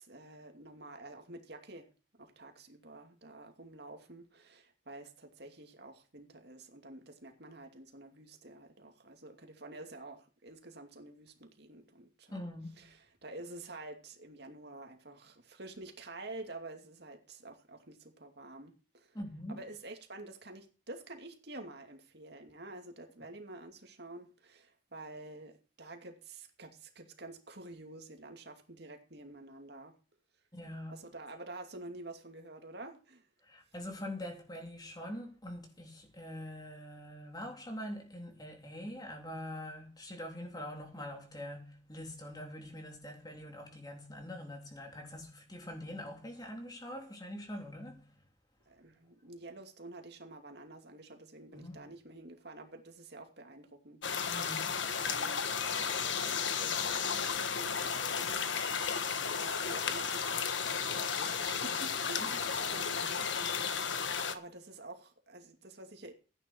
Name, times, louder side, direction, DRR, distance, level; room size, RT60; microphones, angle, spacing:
voice 1, 0.0-1.9 2.2-12.5 12.8-13.0 13.2-19.2 19.5-29.9 30.9-33.3 48.7-54.0 54.9-58.9 59.3-63.2 64.3-66.1, right 2 dB, 55° right, 2.6 m, -49 dB
voice 2, 12.3-12.9 19.1-19.6 30.5-31.0 33.4-48.2 51.5-51.8 54.3-54.7 62.2-62.3, left 1 dB, 20° left, 3.5 m, -44 dB
sound 1, 54.0-64.3, left 6 dB, 75° left, 1.4 m, -33 dB
15.0 x 10.0 x 4.6 m
head